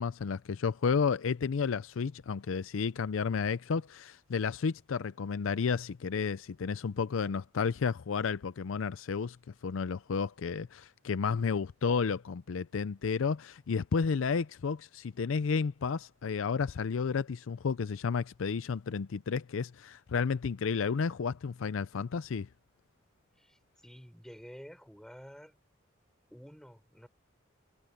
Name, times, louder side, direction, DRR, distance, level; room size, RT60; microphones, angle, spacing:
voice 1, 0.0-9.4 9.6-22.5, left 5 dB, 70° left, 0.5 m, -32 dB
voice 2, 23.3-25.6 26.3-27.1, equal, 5° left, 5.0 m, -50 dB
head